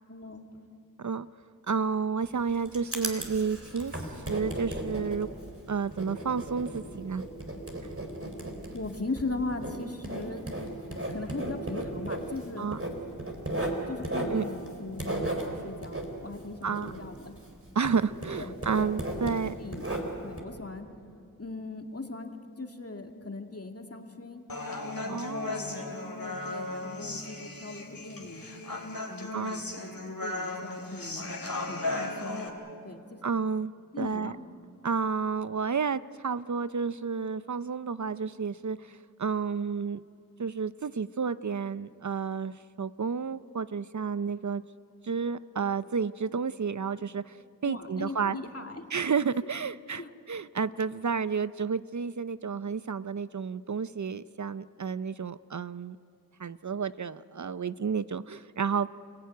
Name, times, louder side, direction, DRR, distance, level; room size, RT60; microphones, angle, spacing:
voice 1, 0.1-0.5 8.7-10.5 11.1-12.7 13.9-17.4 18.4-18.5 18.8-18.9 19.2-19.8 20.2-20.9 21.4-24.4 25.0-28.5 29.1-31.2 31.7-32.6 32.8-33.2 33.9-34.4 47.7-48.8 50.0-50.1, left 3 dB, 45° left, 4 dB, 2.3 m, -39 dB
voice 2, 1.7-4.0 4.3-5.3 5.7-7.2 12.6-12.8 14.3-14.4 16.6-16.9 17.8-19.5 25.1-25.6 29.3-29.6 33.2-33.7 34.0-34.3 34.8-40.0 40.4-44.6 45.0-47.4 47.6-48.4 48.9-50.0 50.3-56.0 56.4-59.0, right 5 dB, 55° right, 15 dB, 0.6 m, -31 dB
Writing, 2.2-17.6 17.8-20.4, right 1 dB, 40° right, 3.9 m, -36 dB
Human voice, 24.5-32.5, left 2 dB, 75° left, 3.5 m, -36 dB
28.5 x 17.0 x 9.3 m, 2.4 s
wide cardioid pair, 45°, 34 cm